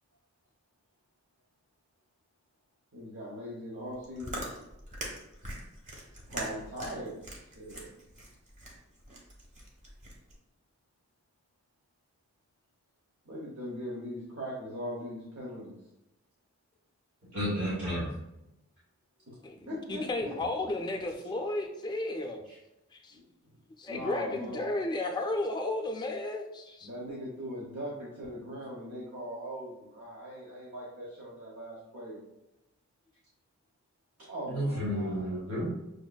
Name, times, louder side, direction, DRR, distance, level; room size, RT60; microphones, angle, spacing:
voice 1, 2.9-4.4 6.3-7.1 7.5-7.9 13.2-15.7 19.3-19.4 19.7-20.4 23.1-23.5 23.9-24.7 26.8-32.2 34.3-35.3, equal, 65° right, -5 dB, 1.0 m, -40 dB
Chewing mastication, 3.9-10.4, right 1 dB, 35° right, 0.9 m, -42 dB
voice 2, 17.3-18.1 34.5-35.7, equal, 85° right, -8 dB, 1.2 m, -31 dB
voice 3, 19.9-22.4 23.0-23.1 23.8-26.9, left 2 dB, 20° left, 2 dB, 0.5 m, -33 dB
6.3 x 2.5 x 2.3 m, 0.91 s
head